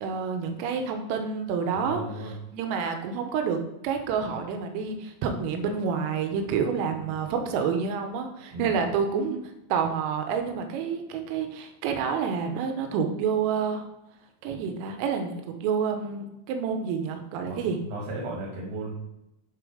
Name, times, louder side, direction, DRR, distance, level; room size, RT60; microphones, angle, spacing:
voice 1, 0.0-9.4 9.7-13.8 14.4-15.3 15.6-17.8, right 6 dB, 90° right, 5 dB, 3.5 m, -28 dB
voice 2, 1.7-2.3 7.0-7.2 8.5-8.9 17.5-18.9, right 1 dB, 70° right, -2 dB, 2.3 m, -36 dB
11.5 x 3.9 x 4.9 m, 0.91 s
omnidirectional pair, 5.8 m